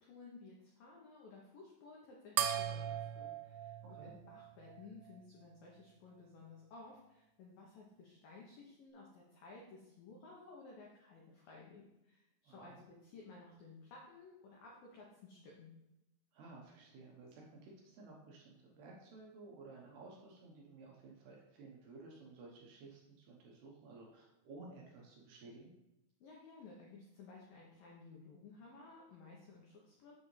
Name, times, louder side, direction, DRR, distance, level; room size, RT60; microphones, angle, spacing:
voice 1, 0.0-15.7 26.2-30.1, left 3 dB, 80° left, -3 dB, 2.0 m, -56 dB
sound 1, 2.4-5.2, right 10 dB, 85° right, 2.6 m, -39 dB
voice 2, 12.5-12.8 16.3-25.7, right 3 dB, 70° right, -2 dB, 2.7 m, -55 dB
7.7 x 7.3 x 3.3 m, 0.92 s
omnidirectional pair, 5.6 m